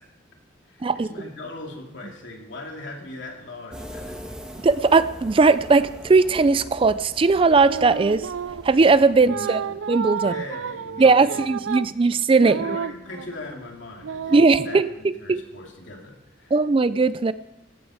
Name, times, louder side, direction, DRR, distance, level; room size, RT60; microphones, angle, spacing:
voice 1, 0.7-4.2 9.2-9.8 10.2-11.4 12.5-14.4 14.6-14.8 15.2-16.6, left 2 dB, 70° left, 1 dB, 2.8 m, -39 dB
sound 1, 3.7-9.3, equal, 5° right, 1.7 m, -41 dB
voice 2, 4.6-8.3 8.6-9.6 9.9-10.3 11.0-12.7 14.3-15.4 16.5-17.3, right 4 dB, 30° right, 15 dB, 0.4 m, -18 dB
sound 2, 7.6-8.8 9.3-13.5 14.0-14.8, right 6 dB, 90° right, 0.4 m, -31 dB
16.0 x 8.1 x 6.4 m, 0.90 s
head